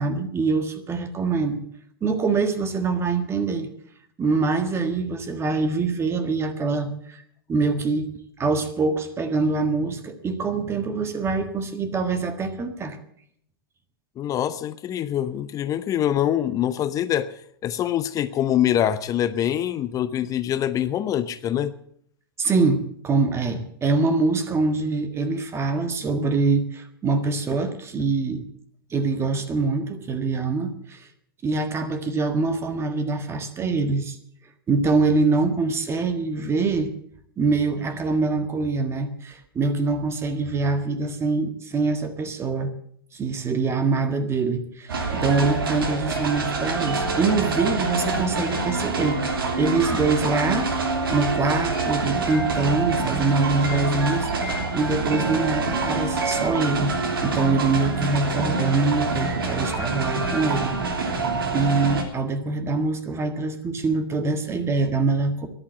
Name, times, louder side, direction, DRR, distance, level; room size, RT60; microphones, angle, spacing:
voice 1, 0.0-1.6 2.0-3.7 4.2-7.2 7.5-8.1 8.4-13.0 22.4-28.4 28.9-31.1 31.4-34.2 34.7-36.9 37.4-42.7 43.1-50.7 51.1-54.3 54.7-56.9 57.2-60.8 61.5-65.5, right 3 dB, 20° right, 9 dB, 1.6 m, -24 dB
voice 2, 14.2-21.7, left 11 dB, 30° left, 14 dB, 0.7 m, -24 dB
sound 1, 44.9-62.0, right 3 dB, 70° right, 2.8 m, -26 dB
13.0 x 11.0 x 7.7 m, 0.67 s
figure-of-eight pair, 100°, 12 cm